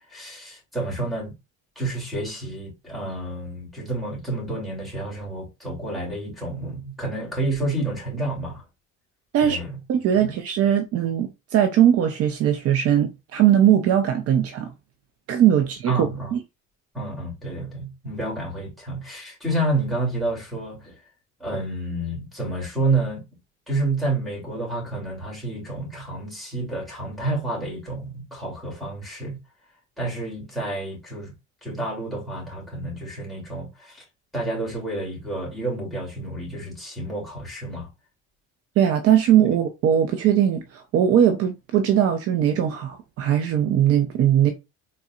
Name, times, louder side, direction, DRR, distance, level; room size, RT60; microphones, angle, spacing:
voice 1, 0.1-1.3 1.8-8.6 9.4-9.7 10.1-10.3 15.9-16.3 16.9-21.0 21.4-23.2 23.7-29.4 30.0-31.3 31.6-34.0 34.3-37.9, right 2 dB, ahead, 2.9 m, -29 dB
voice 2, 9.9-14.7 15.3-16.4 38.8-44.5, right 10 dB, 55° right, 0.7 m, -20 dB
4.2 x 4.0 x 2.5 m
cardioid pair, 145°, 29 cm